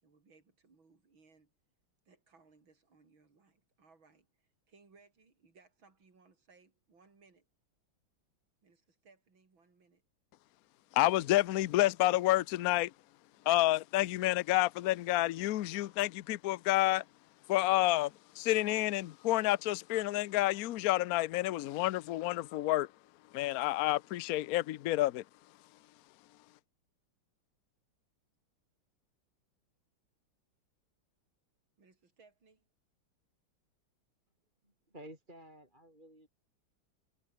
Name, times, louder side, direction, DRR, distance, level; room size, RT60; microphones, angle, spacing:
voice 1, 0.0-1.5 2.1-4.3 4.7-7.5 8.6-10.0 31.8-32.7, right 4 dB, 65° right, 5.1 m, -65 dB
voice 2, 10.9-12.9 13.5-17.0 17.5-22.9 23.3-25.2, left 16 dB, 75° left, 0.8 m, -29 dB
voice 3, 34.6-36.3, right 1 dB, 20° right, 6.5 m, -53 dB
omnidirectional pair, 2.3 m